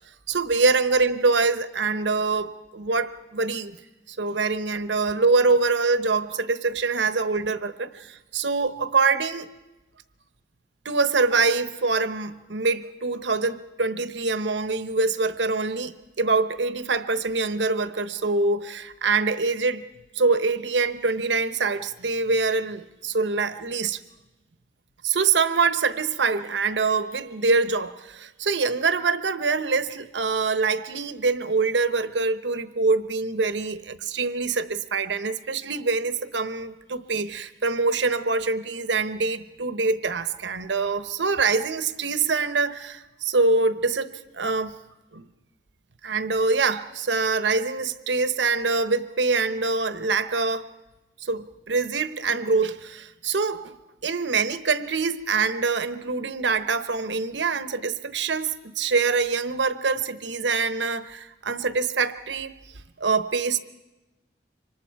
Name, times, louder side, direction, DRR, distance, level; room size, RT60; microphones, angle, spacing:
voice 1, 0.3-3.8 4.1-7.9 8.3-9.5 10.8-19.9 20.1-24.0 25.0-44.8 45.1-45.2 46.0-50.7 51.2-53.8 54.0-62.5 63.0-63.6, right 4 dB, 90° right, 1.0 m, -24 dB
27.0 x 25.0 x 4.7 m
head